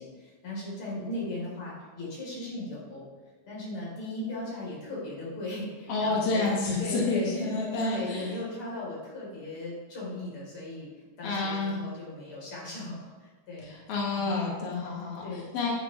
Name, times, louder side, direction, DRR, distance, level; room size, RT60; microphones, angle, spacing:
voice 1, 0.0-3.0 3.5-13.7 14.2-14.4 15.2-15.5, left 2 dB, 30° left, -6 dB, 4.0 m, -37 dB
voice 2, 5.9-8.3 11.2-11.7 13.6-15.2 15.5-15.7, left 3 dB, 80° left, -4 dB, 1.3 m, -29 dB
10.0 x 10.0 x 3.2 m, 1.3 s
omnidirectional pair, 5.5 m